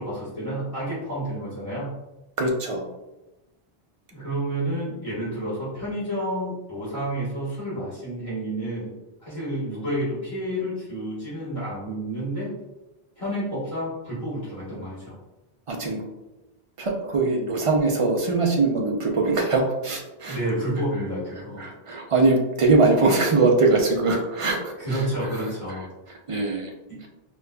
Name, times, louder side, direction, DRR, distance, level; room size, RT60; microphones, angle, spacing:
voice 1, 0.0-1.9 4.1-8.9 9.2-12.5 13.2-15.2 20.3-21.6 24.8-25.9 26.9-27.0, right 1 dB, 30° left, -8 dB, 1.4 m, -30 dB
voice 2, 2.4-2.9 15.7-16.0 16.8-20.4 21.0-25.8 26.3-26.7, right 3 dB, 45° right, 1 dB, 0.4 m, -22 dB
5.0 x 2.3 x 2.2 m, 1.0 s
omnidirectional pair, 1.1 m